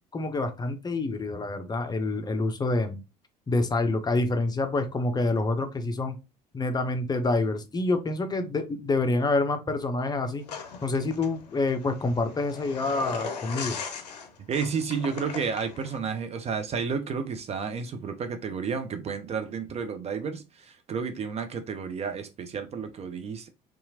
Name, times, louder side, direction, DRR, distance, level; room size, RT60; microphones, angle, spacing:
voice 1, 0.1-3.0 3.5-6.2 6.5-10.4 10.8-13.8, left 2 dB, 20° left, 0.5 m, -27 dB
sound 1, 10.5-16.0, left 6 dB, 80° left, 0.5 m, -39 dB
voice 2, 14.5-23.5, right 6 dB, 30° right, 0.4 m, -31 dB
2.8 x 2.3 x 2.7 m
figure-of-eight pair, 60°, 21 cm